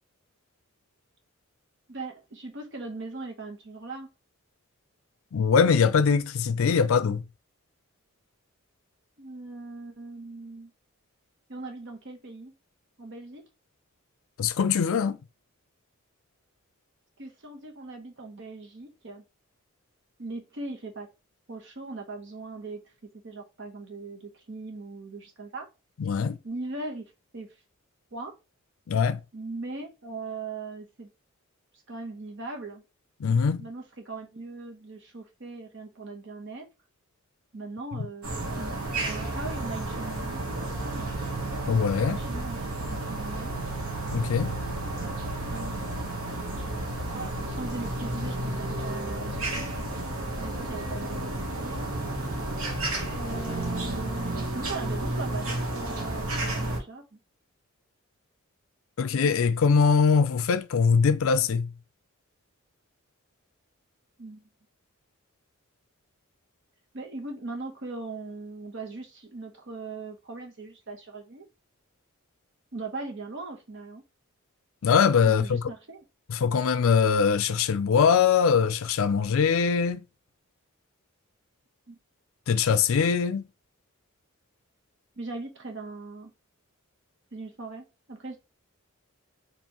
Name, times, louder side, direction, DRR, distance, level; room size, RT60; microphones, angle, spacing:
voice 1, 1.9-4.1 9.2-10.7 11.5-12.5 13.0-13.4 17.2-19.2 20.2-21.1 21.5-25.7 26.4-27.0 27.3-27.5 28.1-28.3 29.3-31.1 31.9-32.8 33.6-36.7 37.5-41.1 42.2-43.6 45.0-45.1 45.5-45.9 47.1-49.9 50.4-51.2 51.6-51.8 53.1-57.2 64.2-64.5 66.9-71.5 72.7-74.0 75.2-76.0 81.9-82.0 85.2-86.3 87.3-88.4, right 3 dB, 55° right, 0.9 m, -39 dB
voice 2, 5.3-7.2 14.4-15.2 26.0-26.4 28.9-29.2 33.2-33.6 41.7-42.2 44.1-44.5 59.0-61.7 74.8-75.6 76.3-80.0 82.5-83.4, left 6 dB, 70° left, 0.4 m, -22 dB
sound 1, 38.2-56.8, right 2 dB, 90° right, 1.1 m, -32 dB
4.5 x 2.9 x 2.9 m
head